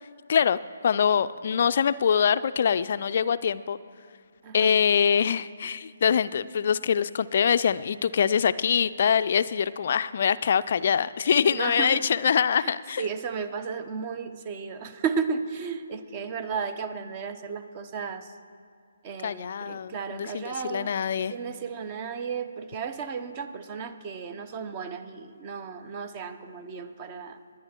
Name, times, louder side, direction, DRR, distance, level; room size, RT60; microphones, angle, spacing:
voice 1, 0.8-3.8 4.5-13.0 19.2-21.3, left 7 dB, 50° left, 15 dB, 0.3 m, -24 dB
voice 2, 11.4-12.0 12.5-18.4 19.0-20.9 21.3-27.4, right 6 dB, 30° right, 10 dB, 0.8 m, -34 dB
21.0 x 9.8 x 4.4 m, 2.3 s
figure-of-eight pair, 140°, 0 cm